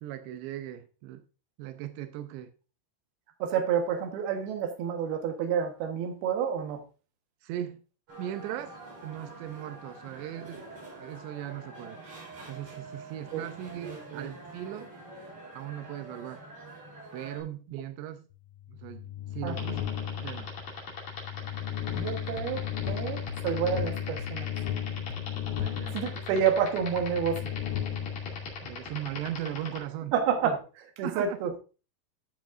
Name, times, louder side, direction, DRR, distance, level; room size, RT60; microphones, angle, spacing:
voice 1, 0.0-1.2 1.6-2.5 7.4-7.8 8.2-8.8 9.0-10.7 11.0-12.0 12.4-14.9 15.6-16.4 17.1-18.2 18.8-19.1 19.3-19.8 20.2-20.5 25.5-26.0 28.6-30.1 31.0-31.4, right 12 dB, 90° right, 2.9 m, -38 dB
voice 2, 3.4-6.8 13.3-13.4 13.8-14.3 19.4-19.6 21.9-22.6 22.9-24.5 25.9-27.4 30.1-31.6, right 7 dB, 70° right, 3.1 m, -29 dB
sound 1, 8.1-17.4, right 2 dB, 40° right, 5.0 m, -46 dB
sound 2, 18.5-29.1, left 10 dB, 85° left, 3.0 m, -35 dB
sound 3, 19.5-29.8, left 7 dB, 45° left, 3.5 m, -39 dB
13.0 x 7.2 x 2.6 m
omnidirectional pair, 5.0 m